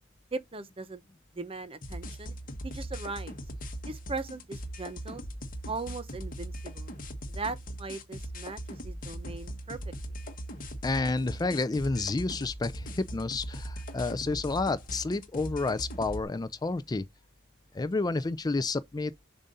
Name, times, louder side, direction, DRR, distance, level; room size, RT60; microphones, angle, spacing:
voice 1, 0.3-1.0 1.3-2.4 2.6-3.4 3.9-5.2 5.7-6.9 7.3-9.8, right 3 dB, 30° right, 0.9 m, -39 dB
sound 1, 1.8-16.2, right 1 dB, 45° left, 1.4 m, -40 dB
voice 2, 10.8-17.1 17.7-19.3, left 3 dB, 20° left, 0.4 m, -30 dB
7.2 x 2.6 x 5.4 m
head